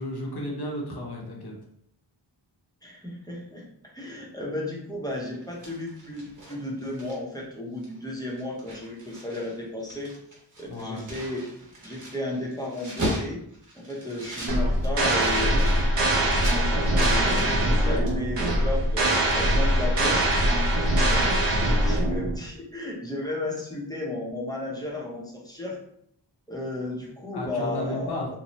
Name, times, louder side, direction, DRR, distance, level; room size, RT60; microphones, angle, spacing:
voice 1, 0.0-1.5 10.7-11.1 27.3-28.3, left 1 dB, 55° left, -2 dB, 0.8 m, -33 dB
voice 2, 2.8-3.7 3.9-10.1 10.6-11.5 11.8-13.4 13.8-25.8 26.5-28.2, left 1 dB, 10° left, -3 dB, 0.6 m, -34 dB
sound 1, 5.4-7.4 7.8-8.0 8.3-9.5 9.8-16.6 17.0-17.8 18.1-18.2, equal, 40° right, 1.0 m, -37 dB
sound 2, 14.5-22.4, right 1 dB, 70° right, 0.8 m, -22 dB
2.7 x 2.0 x 3.0 m, 0.70 s
wide cardioid pair, 80°, 45 cm